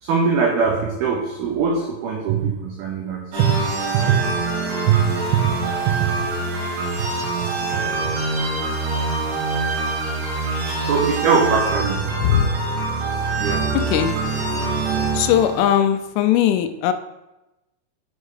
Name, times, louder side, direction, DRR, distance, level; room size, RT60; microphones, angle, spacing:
voice 1, 0.0-3.6 3.9-4.2 4.9-5.1 5.3-5.4 5.9-6.1 7.0-7.1 7.4-7.5 10.7-12.1 13.1-13.6, right 6 dB, 85° right, -1 dB, 2.2 m, -21 dB
sound 1, 3.3-15.6, right 3 dB, 60° right, 2.9 m, -24 dB
voice 2, 13.7-14.2 15.1-16.9, left 10 dB, 85° left, 9 dB, 3.0 m, -19 dB
6.5 x 6.2 x 4.8 m, 0.98 s
omnidirectional pair, 5.6 m